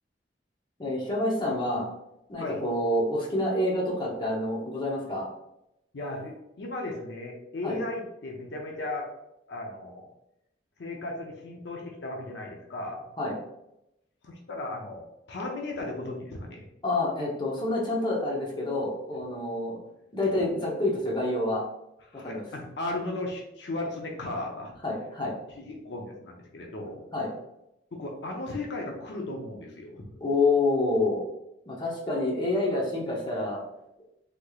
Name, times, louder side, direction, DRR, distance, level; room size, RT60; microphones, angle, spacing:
voice 1, 0.8-1.9 2.3-5.3 7.6-7.8 13.2-13.3 16.8-19.8 20.1-21.6 22.1-22.4 24.8-25.4 27.1-27.3 30.2-31.2 31.7-33.6, left 2 dB, 25° left, -3 dB, 0.8 m, -27 dB
voice 2, 5.9-9.1 9.5-10.1 10.8-13.1 14.2-16.7 22.1-24.7 25.6-27.0 27.9-30.1, left 2 dB, 70° left, 0 dB, 0.6 m, -36 dB
3.5 x 3.1 x 2.3 m, 0.84 s
head